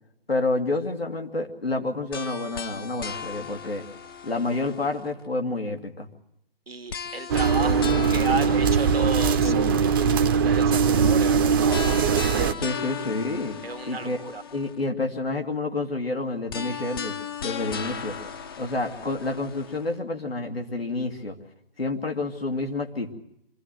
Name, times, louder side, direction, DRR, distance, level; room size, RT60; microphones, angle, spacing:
voice 1, 0.3-3.8 4.2-6.1 7.6-8.6 9.4-9.8 12.6-13.6 13.9-14.2 14.5-17.2 17.4-18.2 18.6-21.4 21.8-23.1, left 2 dB, 90° left, 2 dB, 2.5 m, -29 dB
sound 1, 2.1-5.3 6.9-9.9 11.7-14.9 16.5-19.9, left 7 dB, 25° left, 0.7 m, -37 dB
voice 2, 6.7-10.1 10.4-12.7 13.6-14.4, right 4 dB, 85° right, 8 dB, 1.5 m, -34 dB
sound 2, 7.3-12.5, right 6 dB, 25° right, 0.7 m, -21 dB
26.0 x 15.0 x 7.9 m, 0.82 s
figure-of-eight pair, 145°, 29 cm